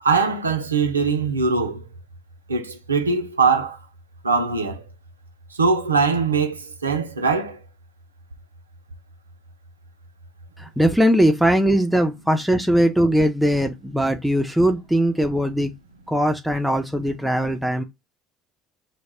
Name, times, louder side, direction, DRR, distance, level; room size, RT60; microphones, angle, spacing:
voice 1, 0.0-1.8 2.5-3.8 4.2-4.8 5.6-7.6, right 4 dB, 85° right, 0.4 m, -21 dB
voice 2, 10.6-15.7 16.1-17.8, equal, 5° right, 0.4 m, -20 dB
2.1 x 2.0 x 3.2 m
figure-of-eight pair, 60°, 0 cm